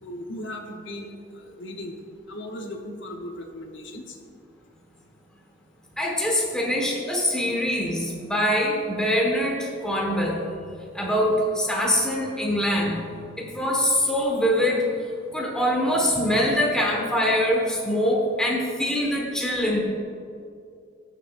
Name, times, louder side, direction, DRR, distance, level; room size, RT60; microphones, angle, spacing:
voice 1, 0.0-1.1 1.3-1.9 2.3-4.2, left 1 dB, 85° left, 3 dB, 1.0 m, -37 dB
voice 2, 6.0-10.5 10.9-13.1 13.4-14.9 15.3-19.8, equal, 5° left, -2 dB, 1.4 m, -23 dB
18.5 x 6.9 x 2.5 m, 2.4 s
head